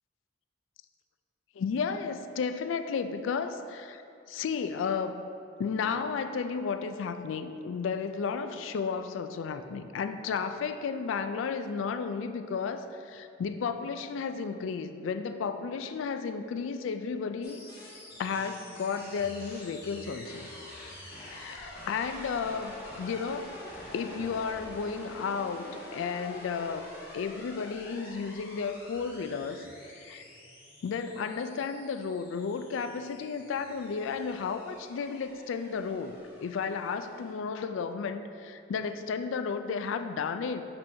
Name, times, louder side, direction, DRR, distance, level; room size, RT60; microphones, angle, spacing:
voice 1, 1.6-4.0 4.3-5.2 5.6-17.6 18.2-20.5 20.8-23.5 23.9-29.7 29.9-30.3 30.8-40.6, left 5 dB, 75° left, 9 dB, 0.3 m, -33 dB
sound 1, 17.4-37.3, left 1 dB, 50° left, 1.2 m, -47 dB
7.1 x 5.3 x 2.7 m, 2.6 s
head